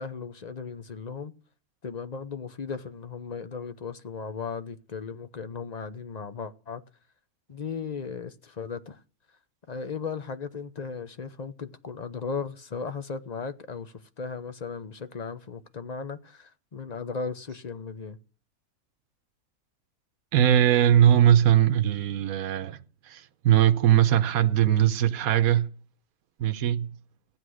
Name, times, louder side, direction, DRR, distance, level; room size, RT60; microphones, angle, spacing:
voice 1, 0.0-1.3 1.8-6.8 7.5-9.0 9.7-18.2, left 5 dB, 35° left, 0.8 m, -36 dB
voice 2, 20.3-22.8 23.1-25.7 26.4-26.9, right 10 dB, 75° right, 1.3 m, -20 dB
15.0 x 9.7 x 6.4 m
omnidirectional pair, 1.5 m